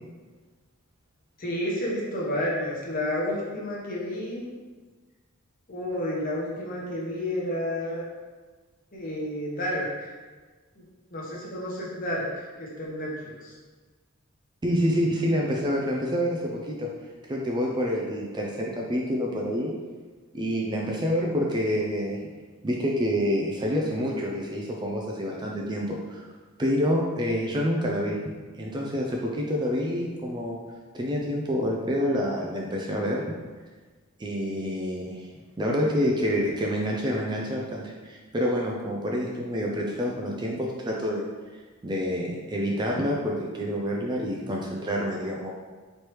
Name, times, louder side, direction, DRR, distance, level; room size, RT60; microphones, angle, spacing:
voice 1, 1.4-4.5 5.7-8.1 8.9-10.2 10.8-10.9 11.1-13.6, left 1 dB, 40° left, -4 dB, 0.9 m, -31 dB
voice 2, 14.6-16.9 17.3-19.7 20.3-22.2 22.6-26.2 26.6-28.2 28.5-30.6 30.9-33.3 34.2-35.3 35.6-41.2 41.8-45.5, equal, 20° right, -2 dB, 0.3 m, -27 dB
4.5 x 3.2 x 3.0 m, 1.4 s
head